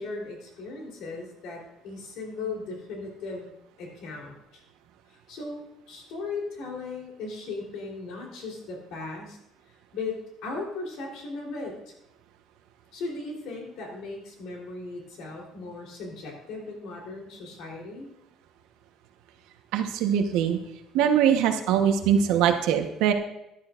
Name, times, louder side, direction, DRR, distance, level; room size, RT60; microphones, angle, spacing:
voice 1, 0.0-3.5 3.8-4.6 5.1-9.4 9.9-11.8 12.9-18.1, left 3 dB, 65° left, 0 dB, 3.6 m, -37 dB
voice 2, 19.7-20.6 20.9-23.1, right 8 dB, 85° right, 6 dB, 1.1 m, -22 dB
14.0 x 11.5 x 2.5 m, 0.85 s
cardioid pair, 175°, 0 cm